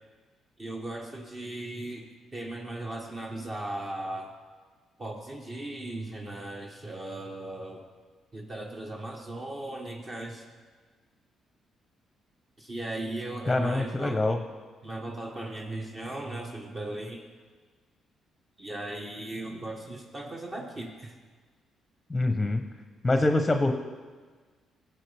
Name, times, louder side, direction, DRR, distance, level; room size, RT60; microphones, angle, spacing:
voice 1, 0.6-4.3 5.0-7.8 8.3-10.5 12.6-14.2 14.8-17.2 18.6-21.1, right 1 dB, 35° right, 0 dB, 1.2 m, -37 dB
voice 2, 13.5-14.4 22.1-22.6 23.0-23.7, left 2 dB, 15° left, 6 dB, 0.7 m, -25 dB
16.0 x 7.9 x 3.4 m, 1.5 s
cardioid pair, 90°, 0 cm